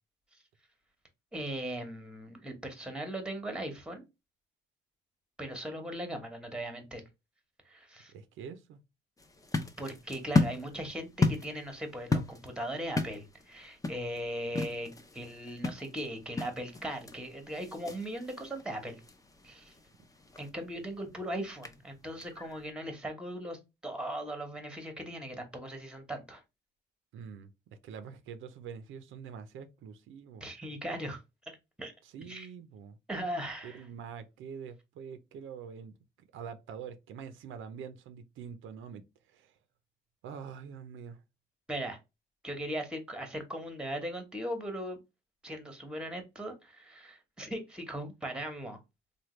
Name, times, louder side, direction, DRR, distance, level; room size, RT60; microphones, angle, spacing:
voice 1, 1.3-4.0 5.4-7.0 7.7-8.1 9.8-19.0 19.4-19.7 20.4-26.4 30.4-31.9 32.3-32.5 33.1-33.9 41.7-42.0 42.4-45.0 45.4-48.8, right 1 dB, 5° right, 1.0 m, -39 dB
voice 2, 8.1-8.8 27.1-27.5 27.8-30.4 32.0-33.0 33.6-35.9 36.3-39.0 39.3-39.5 40.2-41.2, right 7 dB, 80° right, 0.5 m, -45 dB
sound 1, 9.2-22.7, left 3 dB, 15° left, 0.6 m, -35 dB
3.3 x 2.2 x 3.0 m
cardioid pair, 90°, 20 cm